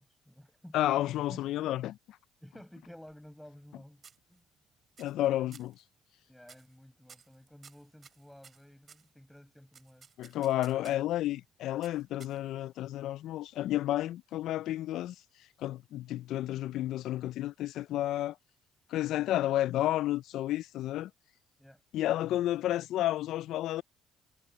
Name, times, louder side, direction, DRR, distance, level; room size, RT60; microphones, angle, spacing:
voice 1, 0.0-1.8 2.4-4.0 4.3-4.4 5.4-5.5 6.3-10.1 21.6-21.8, left 1 dB, 5° left, 6.8 m, -53 dB
voice 2, 0.7-2.0 5.0-5.7 10.2-15.1 15.6-18.4 18.9-21.1 21.9-23.8, left 14 dB, 70° left, 0.3 m, -31 dB
sound 1, 2.8-3.7 4.0-4.6 5.0-5.3 5.5-5.8 6.4-6.8 7.1-9.1 9.7-11.1 11.8-12.7, right 6 dB, 45° right, 4.2 m, -56 dB
supercardioid pair, 75°, 0 cm